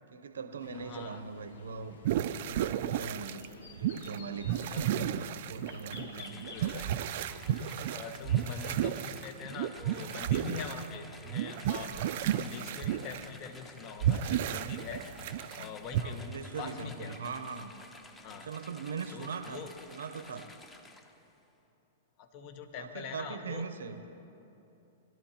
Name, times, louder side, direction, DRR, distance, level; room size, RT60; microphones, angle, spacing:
voice 1, 0.1-2.0 2.5-3.4 3.7-6.4 6.7-6.8 15.9-17.7 18.3-20.5 22.8-24.1, right 5 dB, 80° right, 9 dB, 0.8 m, -41 dB
sound 1, 0.6-7.7, left 4 dB, 75° left, 1.4 m, -53 dB
voice 2, 0.8-1.2 4.7-4.9 5.7-6.9 7.3-7.5 7.9-15.2 15.6-16.2 16.6-17.2 18.2-18.5 19.1-19.7 22.2-23.7, left 6 dB, 40° left, 6 dB, 1.0 m, -44 dB
sound 2, 2.1-3.5 3.8-4.2 4.4-10.9 11.3-13.2 13.8-15.7 15.9-16.0, right 10 dB, 55° right, 0.4 m, -32 dB
sound 3, 6.2-21.3, left 2 dB, 15° left, 0.9 m, -53 dB
21.5 x 12.5 x 2.9 m, 2.9 s
hypercardioid pair, 120°, 0 cm